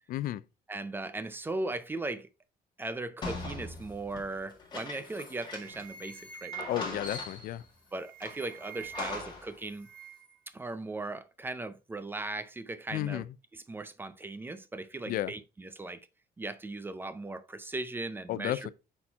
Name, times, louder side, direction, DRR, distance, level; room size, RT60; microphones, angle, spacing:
voice 1, 0.1-0.4 6.7-7.6 12.9-13.2 15.1-15.3 18.3-18.7, left 14 dB, 60° left, 0.4 m, -32 dB
voice 2, 0.7-2.3 2.8-7.0 7.9-9.9 10.5-13.3 13.5-16.0 16.4-18.7, right 2 dB, 15° right, 0.4 m, -38 dB
sound 1, 3.2-6.0 6.2-6.3 6.5-7.6 8.2-9.6, left 3 dB, 25° left, 1.9 m, -40 dB
sound 2, 4.8-5.1 5.4-7.0 7.8-9.3 9.6-10.4, right 8 dB, 5° left, 1.6 m, -47 dB
8.5 x 4.4 x 3.4 m
cardioid pair, 175°, 17 cm